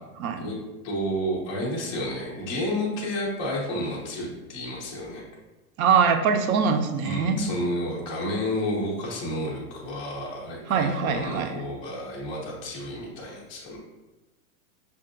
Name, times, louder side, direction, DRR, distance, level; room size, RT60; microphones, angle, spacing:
voice 1, 0.2-0.5 5.8-7.5 10.7-11.6, right 6 dB, 65° right, 6 dB, 0.6 m, -23 dB
voice 2, 0.8-5.2 7.0-13.8, equal, 15° left, -7 dB, 0.3 m, -31 dB
5.6 x 2.6 x 2.5 m, 1.1 s
supercardioid pair, 150°, 45 cm